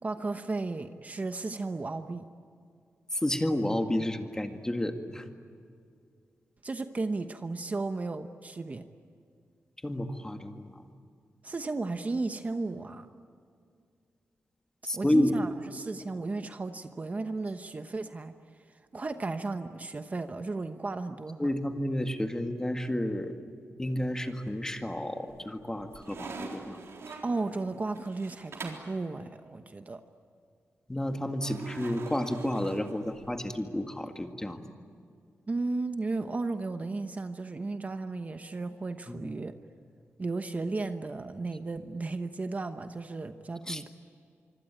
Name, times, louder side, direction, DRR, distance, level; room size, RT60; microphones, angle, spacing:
voice 1, 0.0-2.3 6.6-8.8 11.4-13.1 14.9-18.3 18.7-21.5 27.2-30.0 35.5-39.5 40.2-43.9, right 3 dB, 35° right, 8 dB, 1.0 m, -34 dB
voice 2, 3.1-5.3 9.8-10.9 14.8-15.5 21.4-23.3 23.8-26.8 30.9-34.6 39.1-39.3 43.7-43.8, left 1 dB, 15° left, 5 dB, 2.0 m, -31 dB
sound 1, 24.3-24.9 25.3-29.0 31.4-33.5, right 4 dB, 70° right, 3.9 m, -44 dB
25.0 x 25.0 x 9.1 m, 2.3 s
wide cardioid pair, 110°, 5 cm